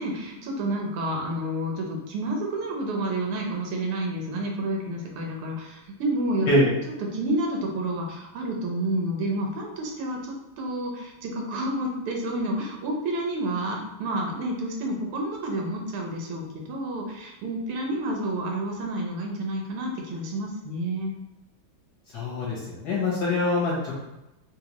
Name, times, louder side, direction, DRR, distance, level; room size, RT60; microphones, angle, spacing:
voice 1, 0.0-6.5 7.1-21.1, right 1 dB, 90° right, 0 dB, 1.7 m, -29 dB
voice 2, 22.1-24.0, left 1 dB, 60° left, -4 dB, 1.2 m, -24 dB
4.0 x 2.3 x 2.9 m, 0.97 s
omnidirectional pair, 2.3 m